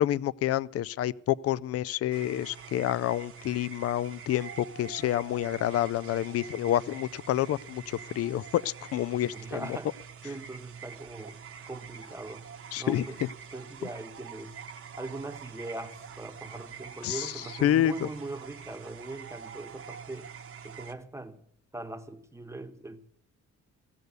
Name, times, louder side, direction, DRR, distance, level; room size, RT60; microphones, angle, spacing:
voice 1, 0.0-9.6 12.7-13.0 17.0-17.3 17.6-18.1, left 12 dB, 50° left, 0.4 m, -28 dB
sound 1, 2.1-20.9, right 7 dB, 45° right, 1.0 m, -45 dB
voice 2, 9.3-11.4 11.7-12.5 12.8-13.2 13.5-14.6 14.9-20.3 20.6-21.5 21.7-23.0, right 2 dB, 10° right, 1.0 m, -41 dB
16.0 x 6.7 x 8.2 m
cardioid pair, 90°, 30 cm